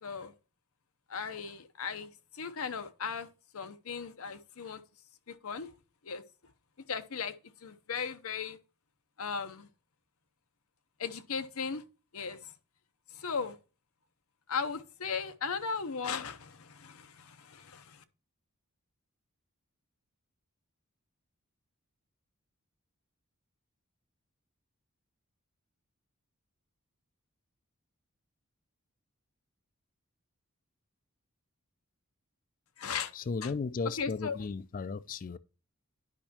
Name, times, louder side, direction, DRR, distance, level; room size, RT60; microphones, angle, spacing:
voice 1, 0.0-0.3 1.1-3.3 3.5-4.8 5.3-5.7 6.0-6.2 6.9-7.3 7.6-8.6 9.2-9.7 11.0-11.8 12.1-12.5 13.1-13.6 14.5-18.0 32.8-33.1 33.4-33.5 34.0-34.4, left 5 dB, 75° left, 0.8 m, -37 dB
voice 2, 33.1-35.4, left 4 dB, 40° left, 0.4 m, -35 dB
10.5 x 5.4 x 2.8 m
head